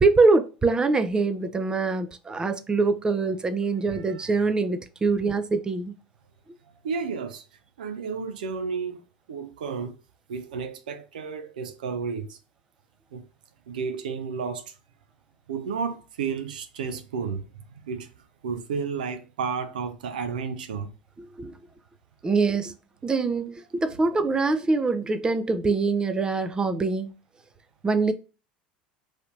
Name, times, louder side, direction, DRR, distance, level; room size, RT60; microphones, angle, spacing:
voice 1, 0.0-5.9 21.4-21.6 22.2-22.7 23.0-27.1 27.8-28.1, right 3 dB, 15° right, 0.4 m, -24 dB
voice 2, 3.9-4.5 6.8-7.5 7.8-9.0 9.3-10.0 10.3-12.4 13.1-13.3 13.7-14.8 15.5-18.1 18.4-20.9, right 5 dB, 75° right, 0.5 m, -32 dB
3.2 x 2.8 x 2.5 m
figure-of-eight pair, 75°, 5 cm